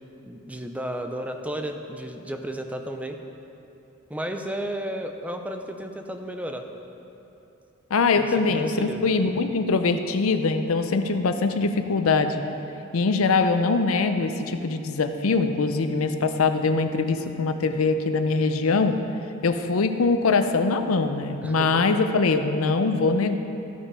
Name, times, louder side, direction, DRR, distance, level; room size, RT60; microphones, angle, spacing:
voice 1, 0.2-3.2 4.1-6.7 8.2-9.1 21.4-21.8, right 1 dB, 5° right, 5 dB, 0.5 m, -33 dB
voice 2, 7.9-12.4 12.9-18.9 19.4-23.3, left 4 dB, 80° left, 8 dB, 0.6 m, -22 dB
13.5 x 5.2 x 4.9 m, 2.9 s
head